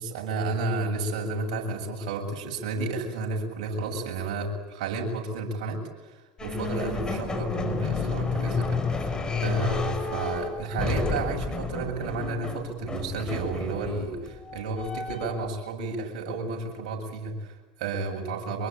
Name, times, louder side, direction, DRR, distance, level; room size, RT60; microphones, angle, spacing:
voice 1, 0.0-18.7, right 3 dB, 70° right, 1 dB, 7.7 m, -32 dB
sound 1, 6.4-15.5, left 4 dB, 20° left, 5.3 m, -31 dB
25.5 x 23.0 x 9.1 m, 1.2 s
hypercardioid pair, 90°, 4 cm